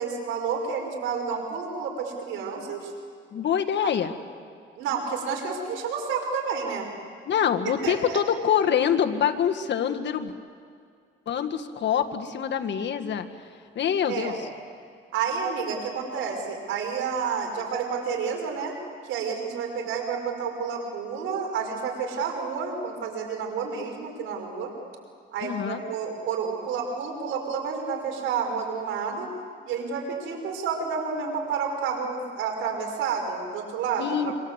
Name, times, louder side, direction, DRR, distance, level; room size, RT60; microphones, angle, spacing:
voice 1, 0.0-2.9 4.8-6.9 7.8-8.2 14.1-14.4 15.1-18.7 19.0-24.7 25.3-29.3 29.7-34.0, right 6 dB, 90° right, 2 dB, 5.2 m, -30 dB
voice 2, 3.3-4.1 7.3-10.3 11.3-13.3 13.8-14.3 25.4-25.8 34.0-34.3, left 8 dB, 65° left, 6 dB, 1.8 m, -25 dB
26.0 x 25.0 x 8.1 m, 2.2 s
cardioid pair, 90°, 20 cm